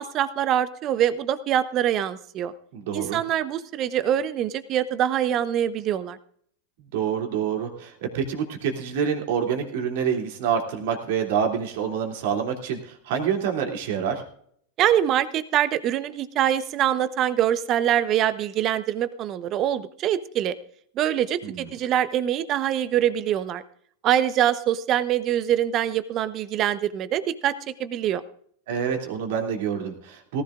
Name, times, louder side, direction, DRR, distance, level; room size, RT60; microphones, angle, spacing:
voice 1, 0.0-2.5 2.9-6.2 14.8-20.5 21.0-23.6 24.0-27.5 27.8-28.2, right 10 dB, 40° right, 13 dB, 1.0 m, -24 dB
voice 2, 2.7-3.2 6.9-14.2 21.4-21.7 28.7-30.4, right 7 dB, 65° right, 3 dB, 2.9 m, -27 dB
18.5 x 15.0 x 2.5 m, 0.63 s
hypercardioid pair, 100°, 0 cm